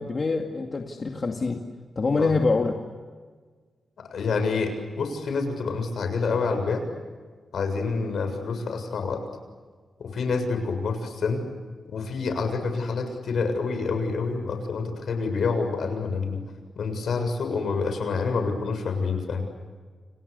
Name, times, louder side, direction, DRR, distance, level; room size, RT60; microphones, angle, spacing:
voice 1, 0.0-1.6 2.0-2.7, left 3 dB, 40° left, 2 dB, 2.3 m, -25 dB
voice 2, 4.1-6.8 7.5-9.2 10.0-11.4 11.9-16.4 16.8-19.4, left 4 dB, 75° left, 7 dB, 7.2 m, -27 dB
29.5 x 29.5 x 6.8 m, 1.5 s
wide cardioid pair, 125°, 0 cm